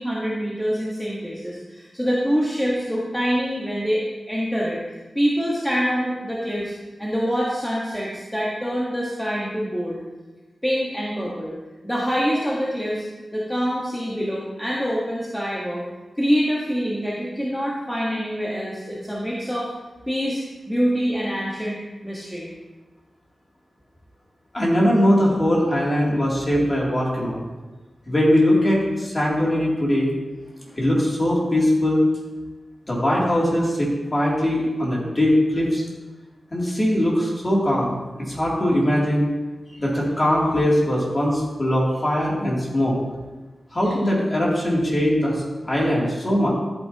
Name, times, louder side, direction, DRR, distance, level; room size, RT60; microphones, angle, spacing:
voice 1, 0.0-4.8 5.1-6.7 7.0-10.0 10.6-11.6 11.8-13.0 13.3-15.8 16.2-19.7 20.1-21.8 22.0-22.5 30.6-30.8, equal, 5° left, -6 dB, 1.4 m, -25 dB
voice 2, 24.5-27.4 28.1-30.1 30.8-32.1 32.9-35.8 36.5-39.3 39.8-43.0 43.7-46.5, equal, 25° left, -4 dB, 2.8 m, -21 dB
13.5 x 8.7 x 2.9 m, 1.2 s
wide cardioid pair, 140°, 0 cm